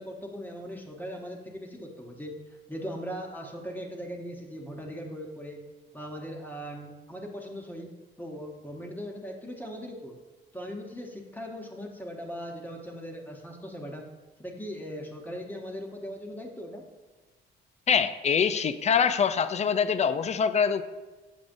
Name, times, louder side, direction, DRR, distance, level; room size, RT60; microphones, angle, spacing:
voice 1, 0.0-2.3 2.7-5.6 5.9-7.9 8.2-10.2 10.5-14.0 14.4-16.8, equal, 10° left, 1 dB, 0.9 m, -39 dB
voice 2, 17.9-20.8, left 6 dB, 35° left, 12 dB, 0.4 m, -24 dB
7.2 x 6.1 x 2.6 m, 1.2 s
cardioid pair, 90°, 20 cm